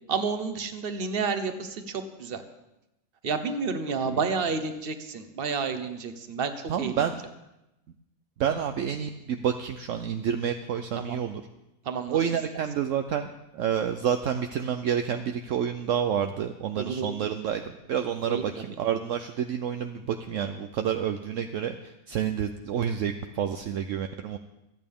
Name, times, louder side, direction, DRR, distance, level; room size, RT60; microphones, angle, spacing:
voice 1, 0.1-2.4 3.2-7.0 10.9-11.2 11.8-12.6 16.7-17.1 18.2-18.7, right 5 dB, 45° right, 8 dB, 1.2 m, -31 dB
voice 2, 6.7-7.2 8.4-11.4 12.1-13.3 13.5-24.4, right 8 dB, 70° right, 7 dB, 1.0 m, -29 dB
27.0 x 9.0 x 3.6 m, 0.92 s
omnidirectional pair, 1.5 m